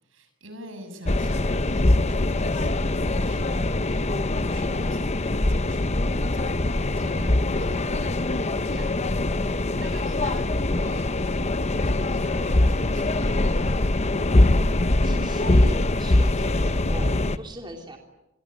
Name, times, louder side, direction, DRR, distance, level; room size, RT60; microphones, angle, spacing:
voice 1, 0.0-9.2 9.8-13.9, right 1 dB, 75° right, 8 dB, 7.3 m, -45 dB
sound 1, 1.0-17.4, left 2 dB, 35° left, 0.9 m, -23 dB
sound 2, 5.2-15.3, right 1 dB, 85° left, 6.0 m, -48 dB
voice 2, 8.5-8.9 9.5-9.8 15.0-18.0, right 1 dB, 25° right, 2 dB, 3.2 m, -39 dB
27.5 x 22.5 x 9.2 m, 0.93 s
head